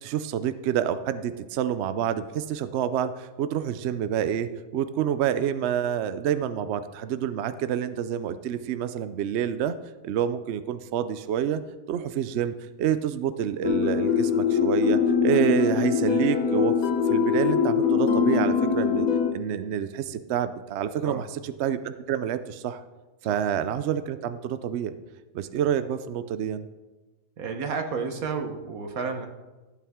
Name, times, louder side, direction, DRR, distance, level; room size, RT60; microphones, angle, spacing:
voice 1, 0.0-9.8 10.0-11.6 11.9-16.8 17.1-22.8 23.2-24.9 25.3-26.7, right 9 dB, 65° right, 12 dB, 0.8 m, -28 dB
sound 1, 13.6-19.3, left 6 dB, 90° left, 1.4 m, -23 dB
voice 2, 27.4-29.3, right 5 dB, 85° right, 5 dB, 1.5 m, -31 dB
14.0 x 8.6 x 3.6 m, 1.2 s
omnidirectional pair, 1.5 m